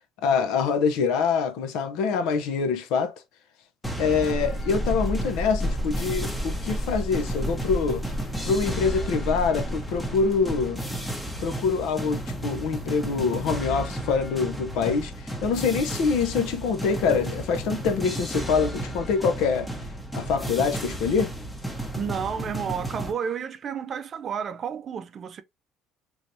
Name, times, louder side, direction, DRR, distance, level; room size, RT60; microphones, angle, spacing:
voice 1, 0.2-3.1 4.0-8.0 8.4-10.8 11.4-15.1 15.4-19.7 20.1-21.3, left 5 dB, 80° left, 0.7 m, -25 dB
sound 1, 3.8-23.1, right 1 dB, 10° left, 0.8 m, -33 dB
sound 2, 4.3-10.6, equal, 35° left, 1.2 m, -32 dB
voice 2, 21.9-25.4, right 7 dB, 45° right, 0.4 m, -31 dB
3.2 x 3.1 x 2.6 m
supercardioid pair, 100°, 0 cm